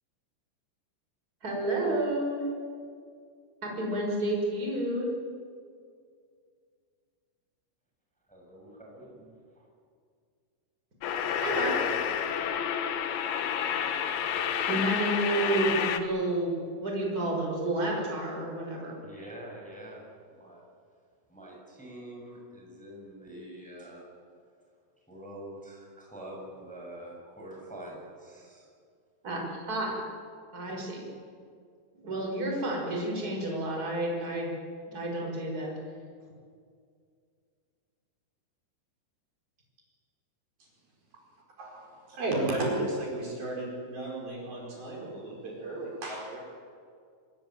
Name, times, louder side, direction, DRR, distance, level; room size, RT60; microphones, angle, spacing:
voice 1, 1.4-2.4 3.6-5.1 11.4-11.7 14.7-19.0 29.2-30.0 30.5-31.1 31.9-34.5 34.9-35.7, right 1 dB, 20° right, -1 dB, 5.9 m, -30 dB
voice 2, 8.3-9.6 19.0-20.6 21.3-24.1 25.1-28.7, right 1 dB, ahead, -1 dB, 6.1 m, -45 dB
sound 1, 11.0-16.0, left 8 dB, 65° left, 2.6 m, -29 dB
voice 3, 41.6-46.4, right 2 dB, 45° right, -2 dB, 6.4 m, -33 dB
26.5 x 21.0 x 9.2 m, 2.2 s
omnidirectional pair, 5.9 m